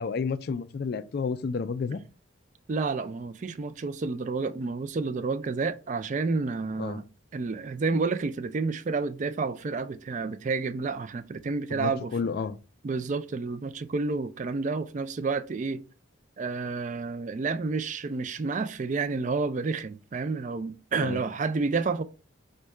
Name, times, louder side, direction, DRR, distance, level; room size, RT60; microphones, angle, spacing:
voice 1, 0.0-2.0 6.8-7.0 11.7-12.6 21.0-21.2, left 5 dB, 50° left, 0.3 m, -31 dB
voice 2, 2.7-7.0 7.3-12.2 12.8-15.8 16.4-22.0, right 4 dB, 35° right, 0.3 m, -30 dB
5.2 x 2.2 x 4.6 m
head